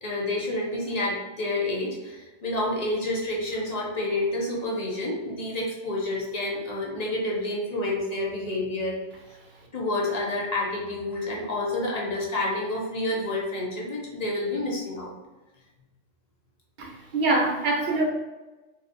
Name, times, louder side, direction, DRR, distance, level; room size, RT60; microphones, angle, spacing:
voice 1, 0.0-9.0 9.7-15.1, left 2 dB, 40° left, -3 dB, 0.7 m, -29 dB
voice 2, 16.8-18.0, right 2 dB, 60° right, 0 dB, 0.5 m, -24 dB
4.0 x 2.5 x 2.5 m, 1.1 s
omnidirectional pair, 1.3 m